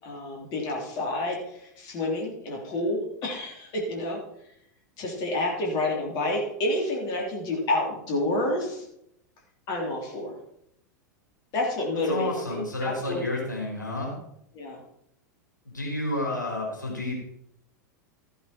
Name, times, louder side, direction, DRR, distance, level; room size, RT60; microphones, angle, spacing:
voice 1, 0.0-4.2 5.0-8.8 9.7-10.4 11.5-13.3 14.5-14.8, left 1 dB, 45° left, -1 dB, 3.5 m, -29 dB
voice 2, 12.1-14.1 15.6-17.1, left 2 dB, 90° left, -2 dB, 3.8 m, -30 dB
14.5 x 8.2 x 4.4 m, 0.77 s
figure-of-eight pair, 90°, 10 cm